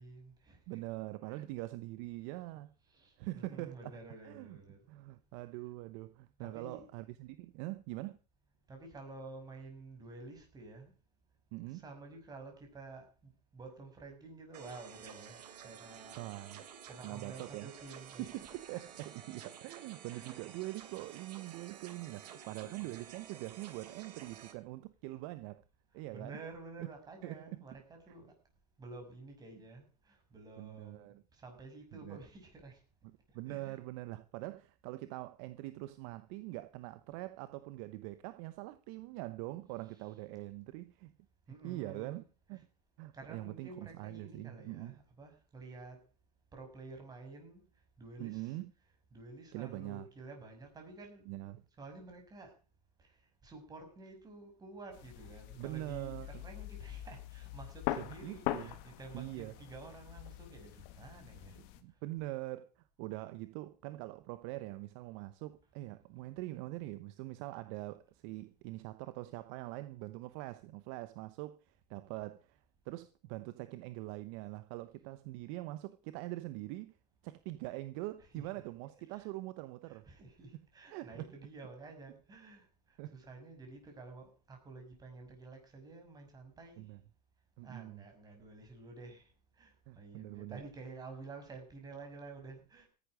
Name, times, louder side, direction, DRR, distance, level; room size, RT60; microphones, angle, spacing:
voice 1, 0.0-0.8 1.3-1.4 2.9-4.8 6.4-6.9 8.7-10.9 11.7-15.4 15.6-16.2 16.9-18.8 20.1-20.4 22.6-23.0 26.1-28.3 28.8-32.8 33.5-33.8 39.8-40.1 41.5-42.2 42.5-42.6 43.1-46.0 46.5-47.6 48.0-48.6 49.1-51.3 51.8-52.5 53.0-53.1 53.4-61.6 78.3-78.5 79.1-79.3 79.9-86.8 87.6-89.3 89.6-92.9, right 3 dB, 20° right, 6.3 m, -51 dB
voice 2, 0.7-2.7 3.2-3.8 4.2-4.6 4.9-8.2 11.5-11.8 16.1-16.7 17.0-17.7 18.2-25.6 25.9-26.4 26.8-26.9 27.2-27.6 28.1-28.2 30.6-31.2 31.9-32.2 33.0-41.1 41.6-42.7 43.0-45.0 48.2-48.7 49.5-50.1 51.3-51.6 55.6-56.5 58.0-58.8 59.1-59.5 61.6-77.0 77.2-80.1 80.9-81.3 83.0-83.2 86.8-87.0 87.6-88.1 89.9-90.6, right 18 dB, 50° right, 0.9 m, -43 dB
sound 1, 14.5-24.5, right 8 dB, 80° right, 3.1 m, -52 dB
sound 2, 54.9-61.8, left 15 dB, 50° left, 1.9 m, -42 dB
17.5 x 11.0 x 5.0 m
supercardioid pair, 130°, 21 cm